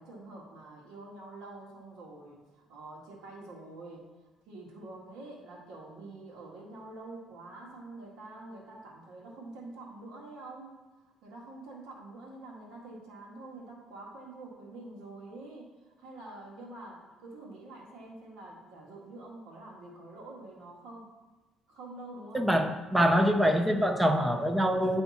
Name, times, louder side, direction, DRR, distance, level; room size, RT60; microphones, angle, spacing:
voice 1, 0.0-4.0 4.5-10.7 11.2-15.7 16.0-21.1 21.7-22.6, right 2 dB, 85° right, -2 dB, 1.8 m, -46 dB
voice 2, 22.3-25.0, equal, 10° right, 6 dB, 0.5 m, -25 dB
9.5 x 3.4 x 4.1 m, 1.2 s
cardioid pair, 115°, 0 cm